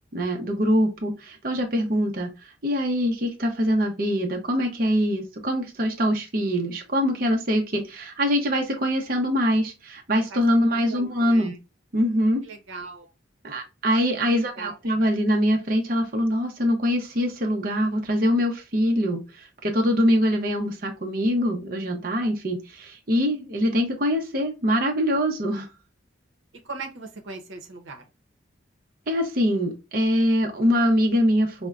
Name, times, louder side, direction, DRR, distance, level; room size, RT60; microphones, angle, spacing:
voice 1, 0.1-2.3 2.6-11.5 11.9-12.4 13.4-25.7 29.1-31.7, equal, 50° right, 0.7 m, -23 dB
voice 2, 10.7-11.6 12.4-13.1 14.3-14.8 26.6-28.0, right 3 dB, 85° right, 0.8 m, -39 dB
5.2 x 2.1 x 2.3 m
head